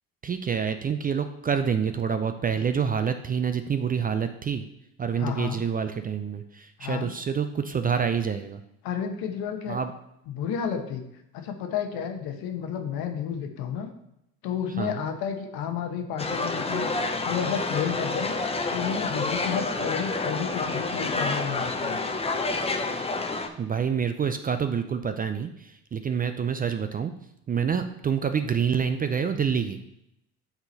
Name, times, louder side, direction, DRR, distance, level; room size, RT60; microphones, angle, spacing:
voice 1, 0.2-4.7 5.0-8.6 9.7-9.9 14.8-15.0 23.6-27.1 27.5-29.8, right 7 dB, 20° right, 9 dB, 0.4 m, -27 dB
voice 2, 5.2-5.6 6.8-7.1 8.8-9.8 10.3-11.0 11.3-13.9 14.4-16.9 17.2-18.3 18.7-22.0, left 7 dB, 60° left, 5 dB, 1.1 m, -31 dB
sound 1, 16.2-23.5, left 3 dB, 15° left, 0.7 m, -29 dB
7.9 x 3.8 x 4.0 m, 0.80 s
hypercardioid pair, 70°, 41 cm